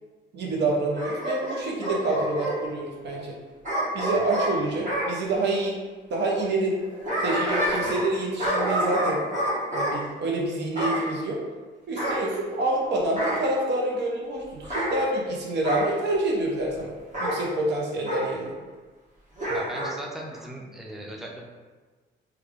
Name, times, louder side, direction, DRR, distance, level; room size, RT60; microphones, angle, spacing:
voice 1, 0.3-3.3 3.9-5.8 6.1-6.7 7.2-9.2 9.7-11.4 11.9-16.9 17.2-18.5, right 2 dB, 60° right, -1 dB, 0.8 m, -27 dB
Bark / Growling, 0.9-2.6 3.6-5.1 6.7-8.1 8.4-10.0 10.7-11.1 12.0-12.8 13.2-13.5 14.6-14.9 15.6-15.9 17.1-17.4 18.0-18.3 19.4-19.9 20.3-20.4, right 1 dB, 40° right, 1.2 m, -28 dB
voice 2, 19.5-21.5, right 1 dB, ahead, -1 dB, 0.5 m, -38 dB
3.3 x 2.3 x 3.4 m, 1.4 s
cardioid pair, 90°, 20 cm